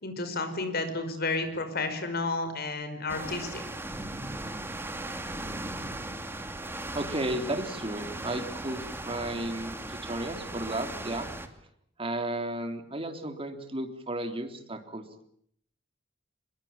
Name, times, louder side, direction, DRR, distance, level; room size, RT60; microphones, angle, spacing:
voice 1, 0.0-3.6, left 3 dB, 55° left, 9 dB, 5.4 m, -31 dB
sound 1, 3.1-11.5, right 1 dB, 10° right, 2.5 m, -38 dB
voice 2, 6.9-11.3 12.0-15.2, right 1 dB, 30° right, 6 dB, 3.4 m, -34 dB
25.5 x 22.0 x 8.9 m, 0.68 s
head